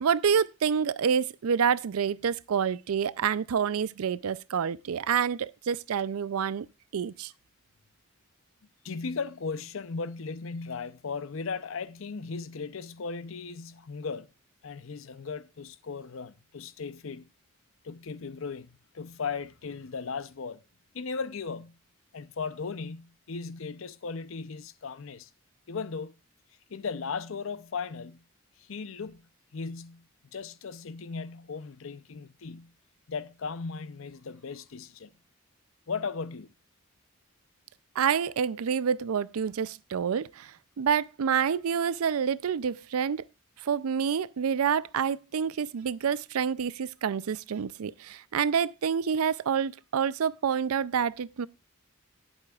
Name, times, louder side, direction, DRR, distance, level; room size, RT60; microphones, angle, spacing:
voice 1, 0.0-6.7 6.9-7.3 38.0-43.2 43.6-51.5, right 7 dB, 85° right, 0.4 m, -28 dB
voice 2, 8.8-14.3 14.6-17.3 17.8-20.6 20.9-21.8 22.1-25.3 25.7-26.1 26.7-28.2 28.6-29.2 29.5-30.0 30.3-32.7 33.1-35.1 35.9-36.5, left 5 dB, 65° left, 0.6 m, -37 dB
19.0 x 8.0 x 2.4 m
head